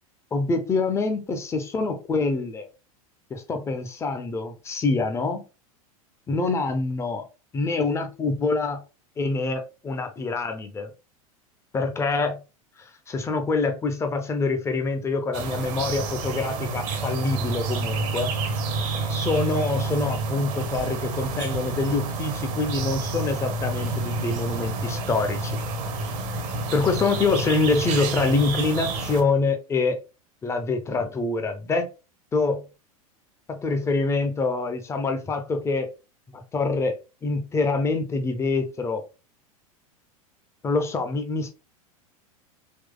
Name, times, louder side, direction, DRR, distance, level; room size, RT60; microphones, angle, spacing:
voice 1, 0.3-2.7 3.3-5.4 6.3-7.2 7.5-8.8 9.2-10.9 11.7-12.4 13.1-18.3 19.1-25.6 26.7-30.0 30.4-31.9 32.3-32.6 33.5-35.9 36.3-39.0 40.6-41.5, left 3 dB, 15° left, 0.6 m, -25 dB
sound 1, 15.3-29.2, right 3 dB, 40° right, 0.7 m, -29 dB
3.6 x 3.0 x 2.3 m
figure-of-eight pair, 85°, 19 cm